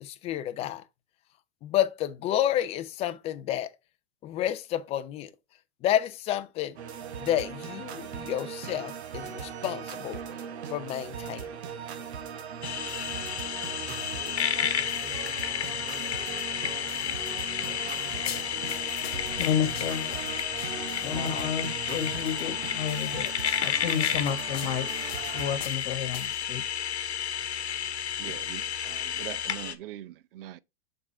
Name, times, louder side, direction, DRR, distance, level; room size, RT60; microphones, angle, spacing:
voice 1, 0.0-0.8 1.6-3.7 4.2-5.3 5.8-6.8 7.2-10.2 10.7-11.5 21.0-21.5, left 12 dB, 20° left, 0.4 m, -30 dB
sound 1, 6.8-25.6, right 7 dB, 80° right, 1.0 m, -39 dB
sound 2, 12.6-29.7, left 9 dB, 90° left, 1.0 m, -32 dB
sound 3, 18.2-21.1 22.2-22.4 23.0-26.5, left 11 dB, 70° left, 0.8 m, -43 dB
voice 2, 19.4-20.1 21.0-23.3 23.6-24.9 25.3-26.6, left 8 dB, 55° left, 1.5 m, -31 dB
voice 3, 28.2-30.6, right 13 dB, 55° right, 0.6 m, -42 dB
6.8 x 3.7 x 4.2 m
hypercardioid pair, 130°, 32 cm